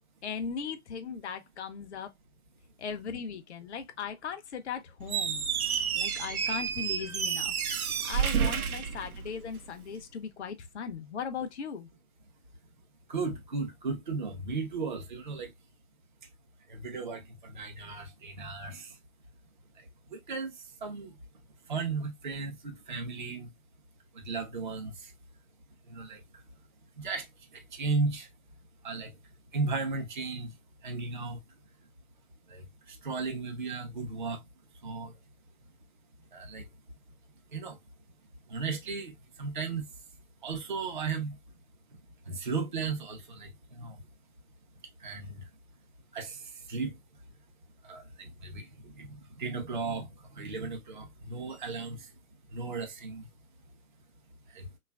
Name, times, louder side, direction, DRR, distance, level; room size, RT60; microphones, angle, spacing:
voice 1, 0.2-2.1 2.8-5.4 5.9-7.5 8.0-11.9, left 6 dB, 50° left, 0.5 m, -38 dB
Squeak, 5.0-9.7, right 7 dB, 80° right, 0.6 m, -30 dB
voice 2, 13.1-15.5 16.7-19.0 19.8-21.1 21.7-23.5 24.1-25.1 25.9-26.4 27.0-28.3 28.8-29.2 29.5-30.6 30.8-31.4 32.5-34.4 34.8-35.2 36.3-36.7 37.5-37.8 38.5-39.9 40.4-41.4 41.9-42.0 42.2-44.0 45.0-45.5 46.1-47.0 47.8-52.1 52.5-53.3 54.5-54.7, right 4 dB, 35° right, 0.4 m, -36 dB
3.1 x 2.3 x 2.2 m
figure-of-eight pair, 145°, 43 cm